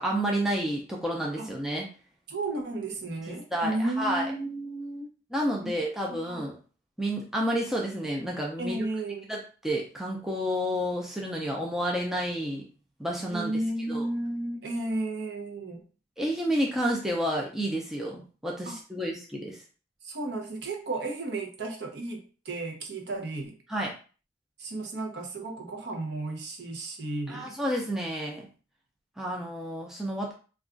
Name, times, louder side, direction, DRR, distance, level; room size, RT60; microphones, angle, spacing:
voice 1, 0.0-1.9 3.3-4.3 5.3-6.6 7.0-8.9 9.3-12.6 13.0-13.5 13.9-14.1 16.2-19.6 23.7-23.9 27.3-28.5 29.2-30.3, equal, ahead, -2 dB, 0.4 m, -30 dB
voice 2, 2.3-5.1 5.6-5.7 6.1-6.4 8.6-9.3 13.3-15.8 18.7-18.8 20.0-23.6 24.6-27.5, right 2 dB, 60° right, 2 dB, 0.7 m, -33 dB
2.3 x 2.3 x 3.7 m, 0.38 s
head